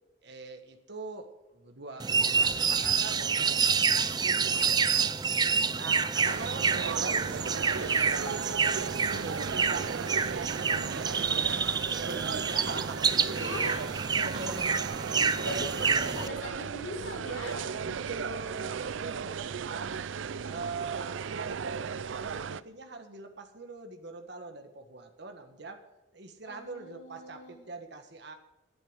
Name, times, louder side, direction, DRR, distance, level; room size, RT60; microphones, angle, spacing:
voice 1, 0.2-5.1 5.6-13.7 14.1-15.6 15.8-16.0 17.8-20.0 20.4-25.8 26.1-28.3, right 3 dB, 60° right, 5 dB, 1.5 m, -43 dB
sound 1, 2.0-16.3, right 5 dB, 20° right, 0.4 m, -28 dB
sound 2, 6.2-22.6, right 6 dB, 75° right, 0.5 m, -36 dB
Bell, 8.3-12.3, right 5 dB, 25° left, 2.2 m, -47 dB
voice 2, 13.4-13.8 15.1-18.0 26.5-27.6, left 1 dB, 65° left, 1 dB, 4.5 m, -41 dB
11.5 x 8.7 x 7.9 m, 1.0 s
head